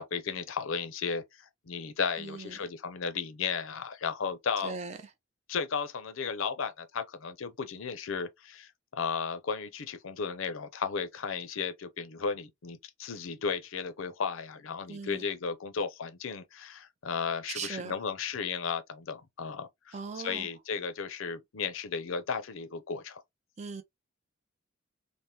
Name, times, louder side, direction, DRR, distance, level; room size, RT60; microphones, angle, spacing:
voice 1, 0.0-4.8 5.5-23.2, left 6 dB, 75° left, 0.5 m, -34 dB
voice 2, 2.2-2.6 4.6-5.0 14.9-15.2 17.5-17.9 19.9-20.5 23.6-23.8, right 5 dB, 30° right, 0.4 m, -39 dB
3.3 x 2.1 x 2.7 m
head